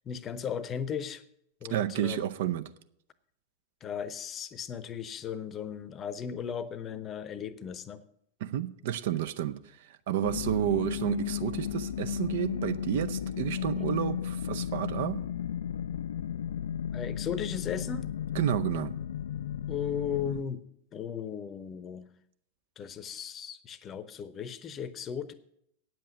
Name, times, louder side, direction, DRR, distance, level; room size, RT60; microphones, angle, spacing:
voice 1, 0.1-1.2 1.6-2.3 3.8-8.0 16.9-18.1 19.7-20.6 20.9-22.1 22.8-25.3, left 7 dB, 25° left, 15 dB, 0.8 m, -36 dB
voice 2, 1.7-2.6 8.4-9.6 10.1-15.2 18.4-18.9, right 11 dB, 55° right, 11 dB, 0.6 m, -30 dB
sound 1, 10.2-20.4, left 9 dB, 65° left, 0.3 m, -34 dB
9.2 x 7.7 x 8.3 m, 0.72 s
figure-of-eight pair, 90°, 0 cm